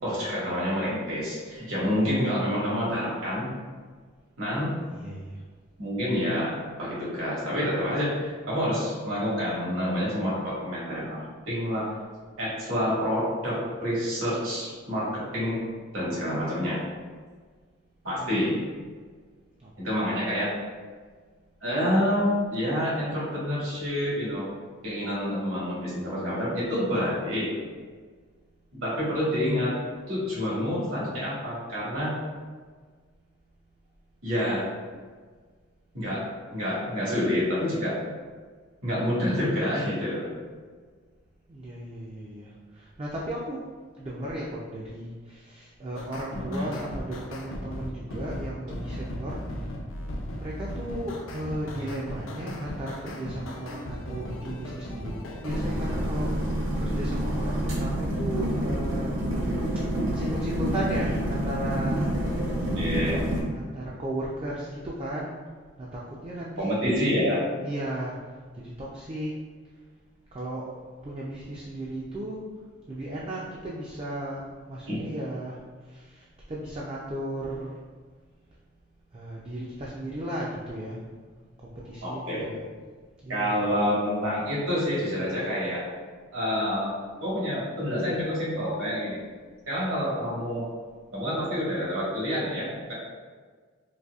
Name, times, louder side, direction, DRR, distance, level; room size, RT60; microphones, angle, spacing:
voice 1, 0.0-3.5 4.4-4.7 5.8-12.0 12.4-15.6 15.9-16.8 18.0-18.6 19.8-20.5 21.6-24.5 24.8-27.5 28.7-29.7 30.1-32.1 34.2-34.7 35.9-36.2 36.5-38.0 38.8-40.3 46.3-46.7 62.7-63.2 66.6-67.4 74.9-75.0 82.0-82.4 83.3-85.8 86.3-86.9 87.2-89.2 89.7-90.6 91.1-92.9, equal, 80° right, -7 dB, 1.5 m, -28 dB
voice 2, 4.9-5.4 18.2-18.5 19.6-20.1 41.5-43.6 44.0-49.8 50.4-59.3 60.1-62.1 62.5-62.9 63.5-65.4 65.8-67.2 67.6-69.3 70.3-70.7 71.0-72.5 72.9-77.8 79.1-81.2 81.6-82.7 83.2-83.6, right 1 dB, 25° right, -5 dB, 0.3 m, -35 dB
sound 1, 45.9-56.0, left 1 dB, 70° left, 0.4 m, -37 dB
sound 2, 55.5-63.4, right 1 dB, 65° right, 0.8 m, -28 dB
4.0 x 2.6 x 2.3 m, 1.5 s
head